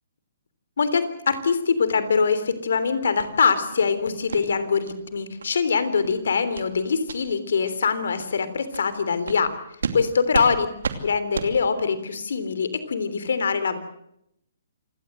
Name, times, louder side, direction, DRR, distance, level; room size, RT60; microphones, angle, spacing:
voice 1, 0.8-9.5 9.9-10.7 11.0-13.8, left 5 dB, 70° left, 13 dB, 3.4 m, -23 dB
sound 1, 3.2-3.3 3.7-3.9 4.3-4.4 4.9-5.0 5.4-5.5 5.9-6.1 6.5-6.7 7.0-7.2 7.7-7.8 8.2-8.3 8.7-8.9 9.3-9.4 9.8-10.0 10.3-10.5 10.8-11.0 11.3-11.5, right 5 dB, 75° right, 2.7 m, -31 dB
27.5 x 17.5 x 7.9 m, 0.77 s
hypercardioid pair, 140°, 0 cm